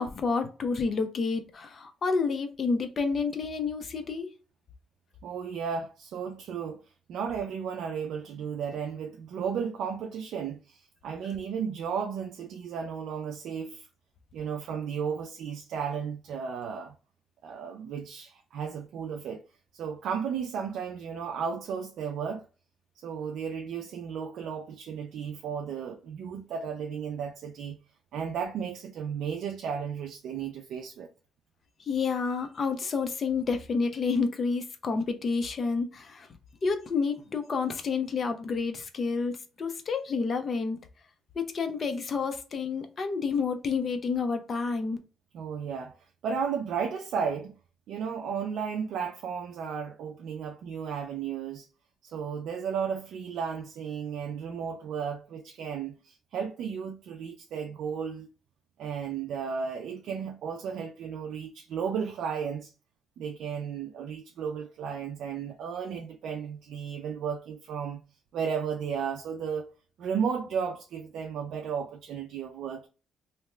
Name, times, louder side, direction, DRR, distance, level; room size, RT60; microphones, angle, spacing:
voice 1, 0.0-4.3 31.8-36.3 36.6-40.8 41.4-45.0, left 4 dB, 45° left, 0.6 m, -29 dB
voice 2, 5.2-6.8 7.1-13.9 14.3-17.0 17.4-19.4 19.7-22.5 23.0-27.8 28.1-31.1 45.3-46.0 46.2-47.6 47.9-51.7 52.0-58.3 58.8-62.7 63.2-68.0 68.3-69.7 70.0-72.9, right 7 dB, 75° right, 0.3 m, -34 dB
2.8 x 2.2 x 3.1 m
cardioid pair, 90°, 0 cm